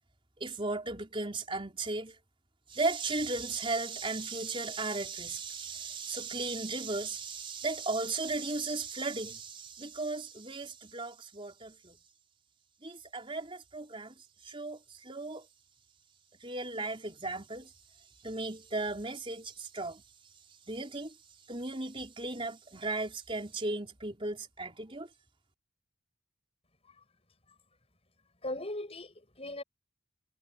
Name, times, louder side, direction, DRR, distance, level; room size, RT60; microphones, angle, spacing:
voice 1, 0.4-2.2 2.7-12.0 12.8-14.2 14.4-15.5 16.4-17.7 18.2-20.0 20.7-21.1 21.5-25.1, right 3 dB, 25° right, 4.6 m, -36 dB
voice 2, 28.4-29.6, left 1 dB, 30° left, 7.9 m, -38 dB
head